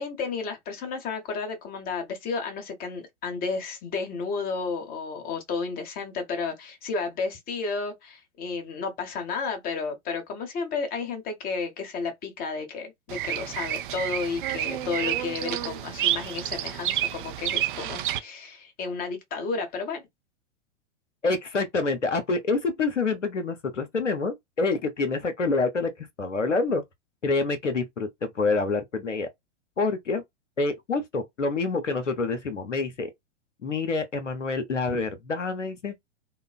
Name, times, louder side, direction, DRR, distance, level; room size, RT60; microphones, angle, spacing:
voice 1, 0.0-20.0, left 4 dB, 25° left, 0.9 m, -32 dB
Bird vocalization bird call bird song, 13.1-18.2, right 12 dB, 45° right, 0.4 m, -29 dB
voice 2, 21.2-25.9 26.2-26.8 27.2-29.3 29.8-30.2 30.6-33.1 33.6-35.9, left 3 dB, 90° left, 0.7 m, -27 dB
3.0 x 2.0 x 2.3 m
figure-of-eight pair, 105°, 36 cm